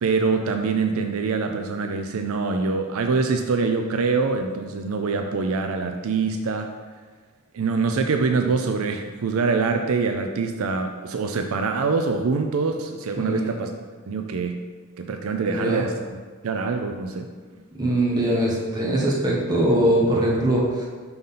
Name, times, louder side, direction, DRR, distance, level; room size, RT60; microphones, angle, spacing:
voice 1, 0.0-6.7 7.5-13.7 14.1-14.6 15.0-16.2 16.4-17.3, right 4 dB, 70° right, 5 dB, 0.4 m, -24 dB
voice 2, 13.2-13.5 15.5-15.8 17.8-20.8, right 1 dB, 20° right, -4 dB, 1.2 m, -22 dB
5.6 x 3.9 x 5.6 m, 1.5 s
head